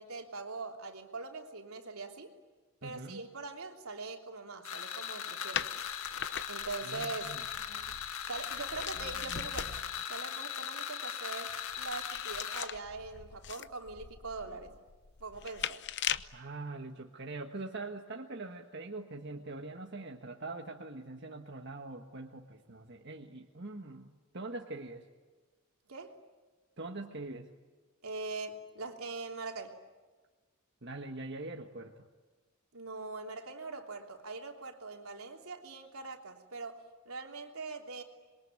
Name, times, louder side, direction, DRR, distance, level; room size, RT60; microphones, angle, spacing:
voice 1, 0.0-2.3 2.8-5.7 6.5-7.3 8.3-9.8 10.1-14.7 15.2-15.8 25.9-26.2 28.0-29.8 32.7-38.0, right 3 dB, 85° right, 2 dB, 3.3 m, -42 dB
voice 2, 2.8-3.2 6.8-8.0 14.4-14.6 16.3-25.0 26.8-27.5 30.8-31.9, right 2 dB, 55° right, 2 dB, 1.5 m, -43 dB
sound 1, 4.6-12.7, left 8 dB, 80° left, 1.6 m, -39 dB
sound 2, 5.5-10.0 11.5-16.4, left 9 dB, 55° left, 0.8 m, -41 dB
27.0 x 22.5 x 9.7 m, 1.3 s
head